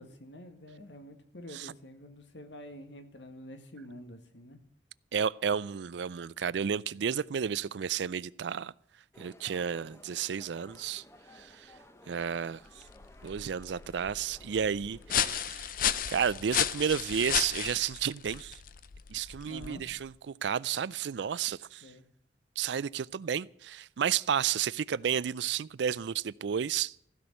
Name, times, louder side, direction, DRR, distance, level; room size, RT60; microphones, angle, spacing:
voice 1, 0.0-4.6 19.5-19.8 21.8-22.0, left 1 dB, 85° left, 1.9 m, -48 dB
voice 2, 5.1-8.7 9.2-11.0 11.3-11.7 12.1-12.8 13.2-15.7 16.1-18.6 19.1-21.9 22.6-26.9, right 8 dB, 80° right, 0.4 m, -32 dB
sound 1, 9.1-15.4, left 1 dB, 15° left, 0.9 m, -56 dB
sound 2, 12.7-20.1, left 9 dB, 50° left, 0.6 m, -34 dB
15.5 x 6.2 x 9.0 m
head